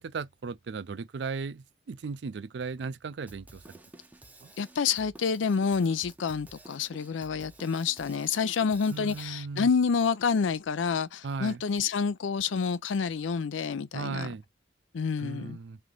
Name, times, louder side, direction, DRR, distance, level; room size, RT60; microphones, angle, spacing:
voice 1, 0.0-3.8 4.4-4.5 8.9-9.7 11.2-11.6 13.9-14.4 15.2-15.8, right 4 dB, 65° right, 0.4 m, -36 dB
Drum kit, 3.3-9.3, right 2 dB, 10° right, 0.6 m, -52 dB
voice 2, 4.6-14.3 14.9-15.6, left 5 dB, 85° left, 0.5 m, -28 dB
3.4 x 2.8 x 3.8 m
head